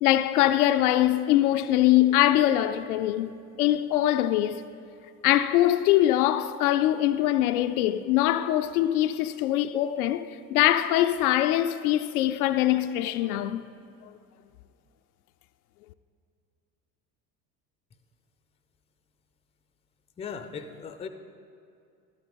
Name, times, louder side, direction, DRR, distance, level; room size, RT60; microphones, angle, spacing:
voice 1, 0.0-3.3 3.6-4.6 5.2-10.2 10.5-13.6, left 13 dB, 60° left, 0.5 m, -23 dB
voice 2, 20.2-21.1, left 6 dB, 15° left, 0.5 m, -37 dB
13.0 x 12.0 x 3.7 m
figure-of-eight pair, 65°, 50 cm